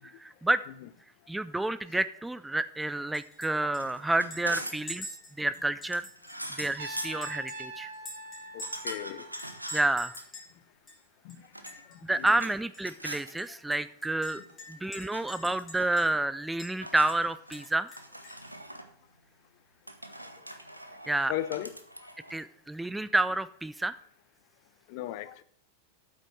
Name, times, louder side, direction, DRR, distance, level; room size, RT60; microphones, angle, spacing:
voice 1, 0.2-0.6 1.3-5.1 5.4-6.1 6.6-7.9 9.7-10.1 12.0-14.4 14.7-17.9 21.1-21.3 22.3-23.9, right 2 dB, 5° right, 0.3 m, -29 dB
Chink clink, 3.1-3.5 3.7-3.8 4.3-6.8 7.2-8.9 9.4-10.5 10.9-11.0 11.3-12.0 12.3-12.4 12.7-12.8 13.4-16.3 16.6-16.7 17.1-18.5, equal, 20° left, 3.2 m, -46 dB
sound 1, 3.7-4.9 5.9-7.2 8.6-10.3 11.4-12.6 12.8-13.3 14.5-14.9 15.1-16.0 16.8-17.7 18.0-18.9 19.9-22.4, right 1 dB, 90° right, 0.8 m, -42 dB
Trumpet, 6.8-9.8, right 2 dB, 60° right, 1.2 m, -43 dB
voice 2, 8.5-9.3 11.2-11.4 12.2-12.3 21.3-21.7 24.9-25.4, left 13 dB, 45° left, 0.5 m, -36 dB
8.4 x 5.9 x 6.1 m
figure-of-eight pair, 90°, 0 cm